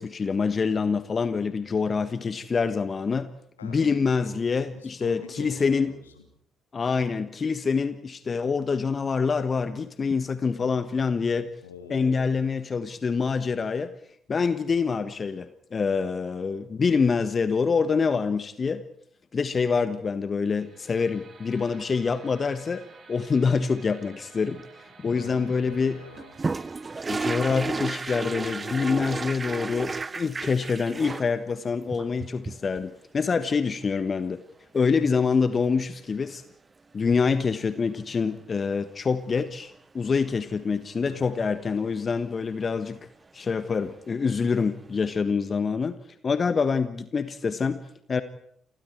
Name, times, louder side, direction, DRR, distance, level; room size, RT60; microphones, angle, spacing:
voice 1, 0.0-3.3 3.6-5.9 6.7-11.5 11.9-13.9 14.3-18.8 19.3-24.6 25.0-26.0 27.1-34.4 34.7-36.4 36.9-43.0 43.3-46.0 46.2-48.2, left 5 dB, 40° left, 12 dB, 1.5 m, -26 dB
voice 2, 3.6-4.3 4.7-6.2 11.6-12.4 25.1-26.3 41.0-41.3, left 6 dB, 85° left, 5 dB, 3.2 m, -44 dB
sound 1, 20.5-31.5, right 5 dB, 50° right, 5.0 m, -53 dB
sound 2, 26.2-31.3 31.9-32.8 34.9-35.0 35.2-35.3 37.6-37.8 43.8-43.9 44.1-44.2, right 3 dB, 30° right, 0.9 m, -32 dB
29.5 x 26.0 x 4.7 m, 0.68 s
figure-of-eight pair, 40°, 0 cm